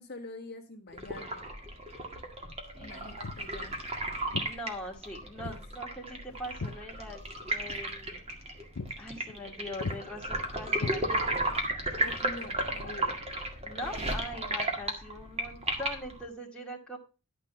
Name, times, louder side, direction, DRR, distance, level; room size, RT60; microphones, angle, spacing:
voice 1, 0.0-1.4 2.8-3.8 5.4-5.6 12.0-13.2, left 2 dB, 50° left, 2 dB, 1.5 m, -45 dB
sound 1, 0.9-16.2, right 1 dB, 30° right, 2.0 m, -34 dB
voice 2, 2.7-3.1 4.4-8.2 9.0-11.4 13.6-17.0, left 1 dB, 5° left, -2 dB, 2.3 m, -42 dB
Walk footsteps, 3.2-3.5 4.3-4.5 5.4-5.6 6.0-7.4 7.7-7.9 8.3-8.4 8.8-9.0 9.3-9.5 9.8-10.0 10.8-11.5, left 4 dB, 85° left, 0.7 m, -38 dB
11.5 x 5.3 x 5.6 m, 0.30 s
head